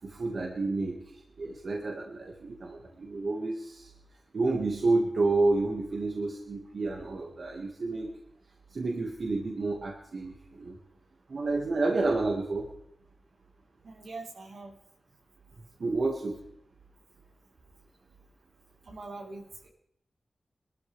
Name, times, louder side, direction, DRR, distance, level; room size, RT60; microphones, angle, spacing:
voice 1, 0.0-3.9 4.3-8.1 8.7-10.8 11.3-12.7 15.8-16.4, right 3 dB, 70° right, 1 dB, 1.6 m, -30 dB
voice 2, 13.8-14.7 18.8-19.7, right 3 dB, 90° right, -2 dB, 3.3 m, -43 dB
22.0 x 13.0 x 3.3 m, 0.76 s
cardioid pair, 60°, 0 cm